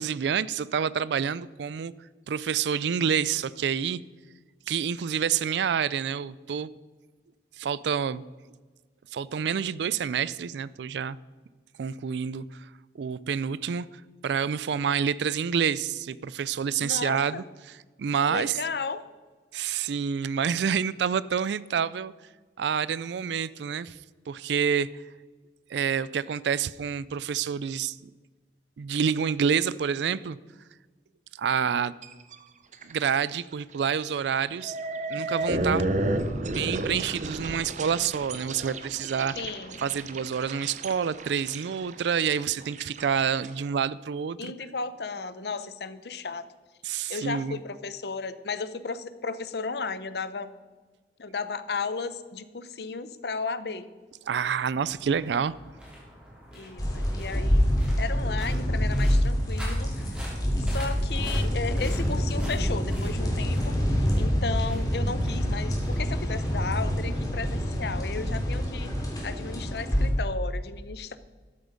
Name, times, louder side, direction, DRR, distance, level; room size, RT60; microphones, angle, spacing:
voice 1, 0.0-1.9 2.3-4.0 4.7-6.7 7.6-8.2 9.1-11.2 11.8-12.7 12.9-13.9 14.2-18.6 19.5-22.1 22.6-24.0 24.3-24.9 25.7-28.1 28.8-30.4 31.4-31.9 32.8-34.8 35.1-36.0 36.4-39.3 39.8-44.5 46.8-47.6 54.3-55.5, right 7 dB, 75° right, 19 dB, 0.4 m, -28 dB
voice 2, 16.8-17.4 18.3-19.0 39.4-39.9 44.4-46.4 47.1-50.5 51.2-53.9 56.5-57.7 58.0-60.0 60.6-63.7 64.2-68.9 69.2-71.2, left 4 dB, 65° left, 14 dB, 0.7 m, -34 dB
sound 1, 32.0-32.3 32.7-33.1 33.5-33.6 34.4-43.5, right 2 dB, 45° right, 0.8 m, -32 dB
sound 2, 54.4-67.7, equal, 5° right, 3.2 m, -47 dB
sound 3, 56.8-70.1, equal, 20° left, 2.5 m, -26 dB
13.0 x 8.0 x 5.1 m, 1.4 s
head